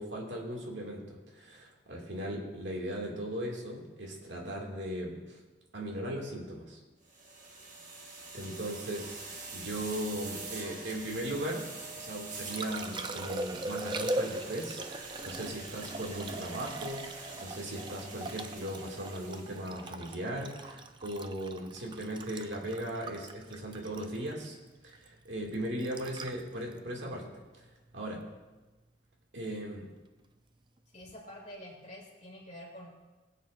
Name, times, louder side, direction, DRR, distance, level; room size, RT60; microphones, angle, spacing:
voice 1, 0.0-5.4 5.7-6.8 8.3-11.7 12.0-24.6 24.8-27.7 27.9-28.2 29.3-29.8, right 1 dB, 70° right, -1 dB, 2.2 m, -38 dB
sound 1, 7.1-19.8, right 3 dB, 40° right, 1.5 m, -45 dB
Liquid, 12.1-28.2 31.0-31.1, right 2 dB, 25° right, 0.5 m, -41 dB
voice 2, 30.9-32.9, equal, 35° left, -3 dB, 2.7 m, -47 dB
20.5 x 8.3 x 2.5 m, 1.2 s
head